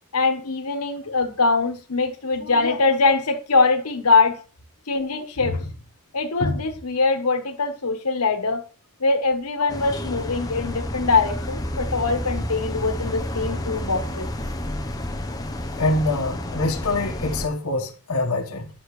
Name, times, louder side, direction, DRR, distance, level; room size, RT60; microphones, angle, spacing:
voice 1, 0.1-4.4 4.9-5.7 6.1-8.6 9.0-14.3, left 3 dB, 90° left, 1.3 m, -22 dB
sound 1, 9.7-17.5, left 1 dB, 15° left, 0.8 m, -30 dB
voice 2, 15.8-18.7, left 2 dB, 70° left, 1.4 m, -25 dB
10.0 x 6.4 x 3.2 m
head